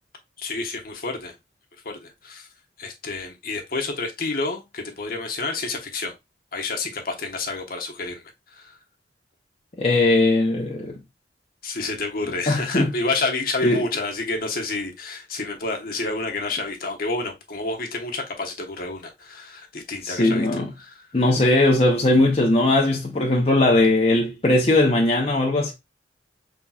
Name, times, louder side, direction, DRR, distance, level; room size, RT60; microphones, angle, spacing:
voice 1, 0.4-1.3 1.8-2.5 2.8-6.1 6.5-8.2 8.5-8.8 11.6-20.5 20.8-21.1, left 3 dB, 50° left, 1.1 m, -29 dB
voice 2, 9.8-10.9 12.5-12.9 13.6-13.8 20.0-20.7 21.1-25.7, left 2 dB, 35° left, 0.7 m, -19 dB
5.7 x 3.6 x 2.3 m
head